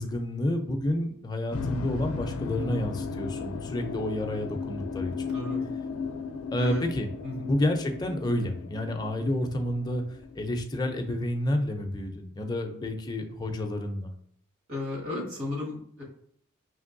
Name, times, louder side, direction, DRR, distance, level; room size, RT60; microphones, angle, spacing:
voice 1, 0.0-5.3 6.5-7.1 7.4-10.0 10.3-14.1, left 1 dB, 20° left, 4 dB, 0.4 m, -30 dB
sound 1, 1.5-10.4, left 5 dB, 85° left, 0.4 m, -35 dB
voice 2, 5.3-5.6 6.6-6.9 7.2-7.5 14.7-16.0, left 2 dB, 70° right, -3 dB, 1.7 m, -34 dB
5.2 x 3.0 x 2.5 m, 0.66 s
head